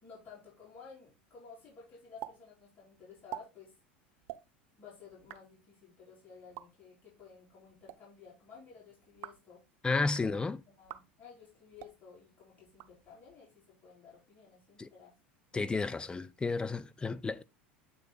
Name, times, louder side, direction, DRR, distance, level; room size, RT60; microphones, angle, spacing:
voice 1, 0.0-3.7 4.8-9.6 10.1-15.1, left 5 dB, 30° left, 3.7 m, -54 dB
sound 1, 2.2-2.3 2.6-2.7 3.1-3.4 4.2-4.4 5.1-5.4 6.4-6.6 7.7-8.0 9.0-9.5 10.0-10.3 10.8-11.0 11.7-11.9 12.6-13.3, right 14 dB, 55° right, 0.5 m, -46 dB
voice 2, 9.8-10.6 14.8-14.9 15.5-17.4, left 3 dB, 15° left, 0.5 m, -32 dB
7.7 x 3.3 x 3.8 m
hypercardioid pair, 80°, 6 cm